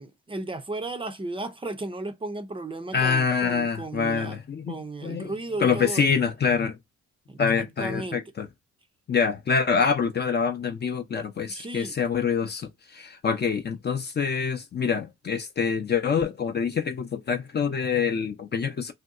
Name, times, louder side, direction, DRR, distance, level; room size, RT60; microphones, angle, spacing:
voice 1, 0.0-4.4 4.7-6.1 7.3-8.2 11.5-11.9, right 2 dB, 15° right, 0.5 m, -35 dB
voice 2, 2.9-5.3 5.6-6.7 7.4-8.5 9.1-18.9, left 6 dB, 35° left, 0.5 m, -26 dB
2.6 x 2.2 x 3.6 m
cardioid pair, 90°, 30 cm